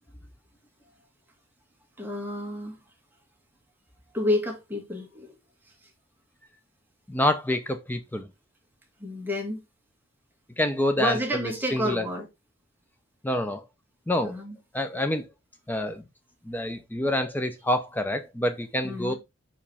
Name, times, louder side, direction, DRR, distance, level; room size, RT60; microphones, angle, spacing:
voice 1, 2.0-2.8 4.1-5.4 9.0-9.6 11.0-12.3 14.2-14.5 18.8-19.2, left 1 dB, 10° right, 1.6 m, -29 dB
voice 2, 7.1-8.3 10.6-11.2 11.7-12.0 13.2-13.6 14.1-14.3 14.7-15.2 15.7-16.0 16.5-19.1, left 1 dB, 10° left, 0.5 m, -27 dB
5.7 x 5.0 x 3.4 m
head